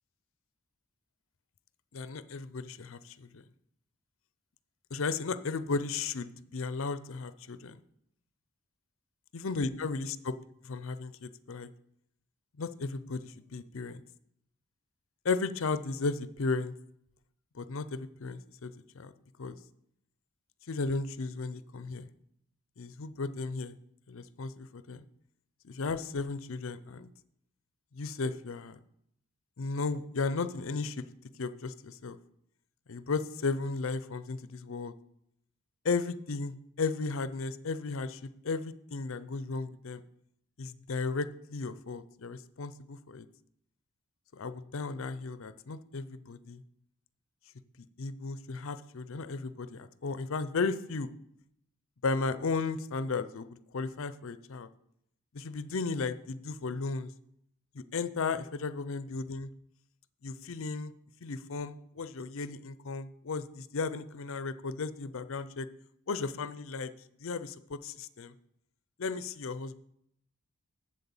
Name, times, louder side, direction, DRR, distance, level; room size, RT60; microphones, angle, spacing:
voice 1, 1.9-3.4 4.9-7.8 9.3-10.3 10.6-11.7 12.6-14.0 15.2-16.7 17.5-19.1 19.4-19.6 20.7-22.1 22.8-23.8 24.1-25.0 25.6-27.1 27.9-28.8 29.6-31.0 31.4-32.2 32.9-34.9 35.8-40.0 40.6-43.3 44.3-46.6 48.0-51.1 52.0-54.7 55.3-57.1 57.7-59.5 60.2-60.9 61.2-65.7 66.1-66.9 67.2-68.3 69.0-69.8, left 4 dB, 60° left, 14 dB, 0.5 m, -35 dB
7.9 x 7.6 x 7.1 m, 0.75 s
head